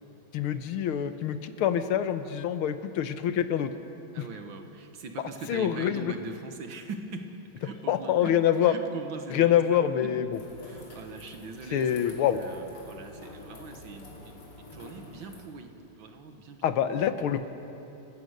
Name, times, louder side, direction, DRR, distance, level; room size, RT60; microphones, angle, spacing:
voice 1, 0.3-3.7 4.2-4.3 5.5-6.1 7.9-8.7 9.3-10.4 11.7-12.4 16.6-17.5, left 10 dB, 85° left, 11 dB, 1.8 m, -26 dB
voice 2, 4.1-10.2 10.6-17.0, right 3 dB, 65° right, 6 dB, 2.1 m, -42 dB
sound 1, 10.3-15.5, left 2 dB, 55° left, 3.2 m, -48 dB
29.0 x 15.5 x 6.6 m, 2.8 s
omnidirectional pair, 2.3 m